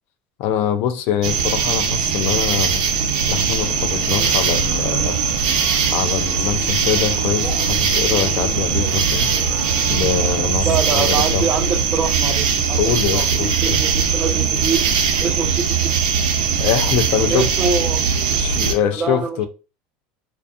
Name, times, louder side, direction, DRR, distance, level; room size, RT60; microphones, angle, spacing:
voice 1, 0.4-2.8 3.3-5.2 5.9-9.4 9.9-11.5 12.7-13.8 16.6-17.5 18.0-19.5, left 10 dB, 55° left, 0.4 m, -23 dB
sound 1, 1.2-18.7, right 6 dB, 75° right, 0.6 m, -20 dB
sound 2, 3.6-10.4, left 3 dB, 25° left, 0.7 m, -35 dB
Male speech man speaking, 5.4-5.7 6.4-6.7 7.3-7.7 8.8-9.1 10.4-11.2, left 3 dB, 80° left, 0.7 m, -35 dB
voice 2, 10.6-12.8 13.1-14.8 15.2-15.9 17.2-18.0 18.9-19.5, right 5 dB, 25° right, 0.3 m, -24 dB
2.6 x 2.3 x 2.4 m
supercardioid pair, 150°, 4 cm